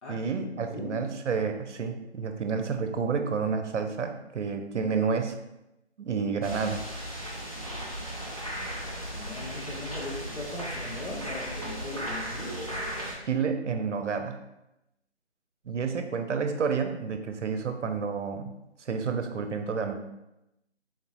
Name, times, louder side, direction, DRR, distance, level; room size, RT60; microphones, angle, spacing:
voice 1, 0.1-5.4 6.0-6.8 13.3-14.4 15.7-18.5 18.8-19.9, right 5 dB, 90° right, 6 dB, 0.6 m, -30 dB
voice 2, 0.7-1.2 9.2-12.5, left 1 dB, 80° left, -2 dB, 1.1 m, -39 dB
sound 1, 6.4-13.1, equal, 30° left, 0.5 m, -36 dB
3.8 x 2.6 x 2.8 m, 0.90 s
figure-of-eight pair, 175°, 34 cm